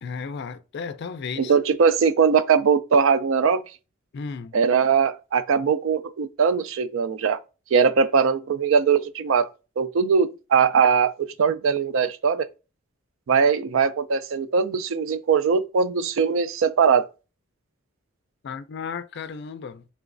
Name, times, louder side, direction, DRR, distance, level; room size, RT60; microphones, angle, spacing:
voice 1, 0.0-1.6 4.1-4.6 18.4-19.9, left 5 dB, 55° left, 0.4 m, -34 dB
voice 2, 1.4-3.6 4.5-7.4 7.7-9.5 9.8-12.5 13.3-17.1, right 6 dB, 65° right, 0.4 m, -21 dB
3.2 x 3.0 x 2.5 m
head